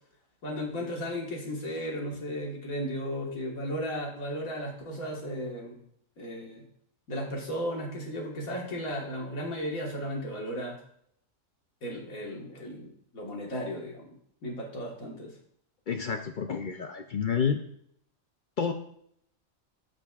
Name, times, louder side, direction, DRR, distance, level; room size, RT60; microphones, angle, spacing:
voice 1, 0.4-5.8 6.2-6.6 7.1-10.8 11.8-14.1 14.4-15.3, equal, 90° left, -1 dB, 2.0 m, -35 dB
voice 2, 15.9-17.6 18.6-18.7, left 6 dB, 65° left, 5 dB, 0.5 m, -29 dB
14.0 x 5.2 x 2.4 m, 0.68 s
omnidirectional pair, 1.4 m